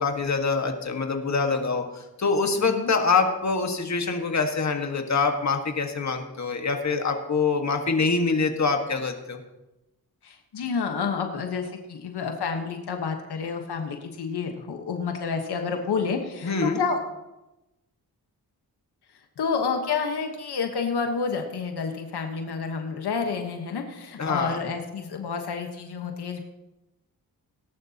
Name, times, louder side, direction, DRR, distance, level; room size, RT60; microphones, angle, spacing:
voice 1, 0.0-9.4 16.4-16.8 24.2-24.6, left 4 dB, 45° left, 4 dB, 1.6 m, -25 dB
voice 2, 2.6-2.9 10.2-17.0 19.4-26.4, left 5 dB, 90° left, 4 dB, 1.3 m, -29 dB
18.0 x 11.0 x 2.9 m, 0.97 s
cardioid pair, 75°, 38 cm